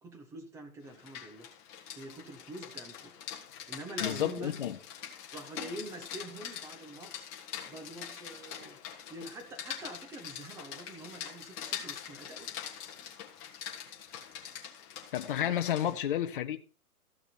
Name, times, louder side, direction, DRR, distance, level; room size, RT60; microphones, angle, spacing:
voice 1, 0.0-1.5 2.0-3.1 3.7-4.5 5.3-7.3 7.7-8.8 9.1-12.8 15.8-16.2, right 1 dB, 5° right, 0.9 m, -45 dB
Rain, 0.9-16.0, left 8 dB, 20° left, 1.5 m, -44 dB
voice 2, 4.0-4.8 15.1-16.6, left 11 dB, 35° left, 0.8 m, -31 dB
14.0 x 6.4 x 4.2 m
hypercardioid pair, 150°, 45 cm